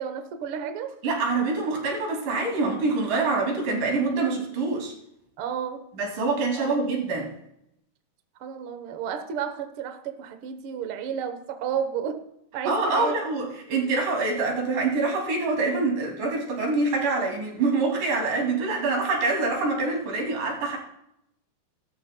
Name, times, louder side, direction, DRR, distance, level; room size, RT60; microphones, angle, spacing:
voice 1, 0.0-0.9 5.4-5.8 6.6-6.7 8.4-12.2 12.5-13.2, right 7 dB, 65° right, 7 dB, 1.4 m, -32 dB
voice 2, 1.0-4.9 5.9-7.3 12.7-20.8, right 3 dB, 85° right, 0 dB, 4.2 m, -25 dB
18.0 x 13.0 x 2.2 m, 0.79 s
omnidirectional pair, 3.6 m